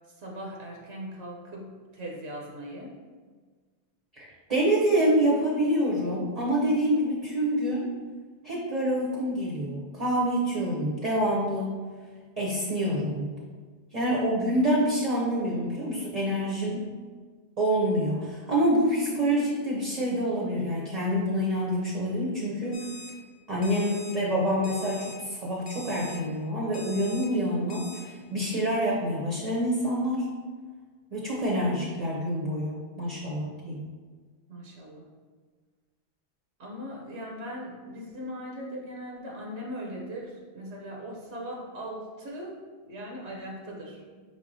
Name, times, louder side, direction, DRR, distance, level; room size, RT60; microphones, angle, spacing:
voice 1, 0.2-2.9 34.5-35.0 36.6-42.5 42.9-44.0, equal, 85° right, -1 dB, 1.1 m, -39 dB
voice 2, 4.2-7.9 8.4-11.8 12.4-13.3 13.9-16.9 17.6-22.8 23.5-30.2 31.1-33.8, equal, 40° right, -5 dB, 0.8 m, -27 dB
Alarm, 22.7-23.1 23.6-24.1 24.6-25.1 25.7-26.2 26.7-27.3 27.7-28.0, left 2 dB, 65° left, 0.8 m, -43 dB
5.1 x 3.6 x 2.6 m, 1.5 s
omnidirectional pair, 1.1 m